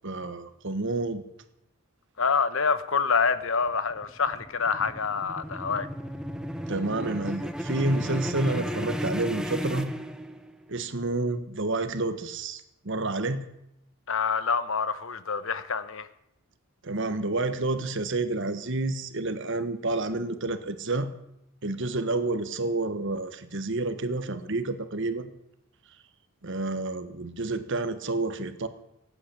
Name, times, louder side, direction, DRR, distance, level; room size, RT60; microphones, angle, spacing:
voice 1, 0.0-1.2 6.7-9.9 10.7-13.4 16.8-21.1 21.6-25.3 26.4-28.7, right 2 dB, 55° right, 1.2 m, -29 dB
voice 2, 2.2-5.9 14.1-16.1, left 5 dB, 60° left, 1.0 m, -26 dB
sound 1, 3.4-10.7, equal, 5° right, 0.8 m, -34 dB
17.5 x 8.8 x 8.6 m
head